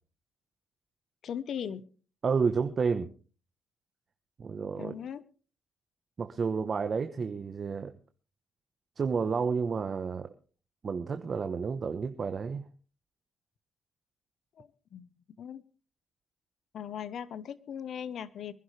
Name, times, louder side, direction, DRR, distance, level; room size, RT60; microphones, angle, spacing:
voice 1, 1.2-1.8 4.8-5.2 14.6-15.1 15.4-15.6 16.7-18.5, left 8 dB, 65° left, 17 dB, 1.0 m, -38 dB
voice 2, 2.2-3.1 4.4-4.9 6.2-7.9 9.0-10.3 10.8-12.7, right 5 dB, 45° right, 7 dB, 1.0 m, -30 dB
24.0 x 11.0 x 3.3 m, 0.37 s
cardioid pair, 90°, 0 cm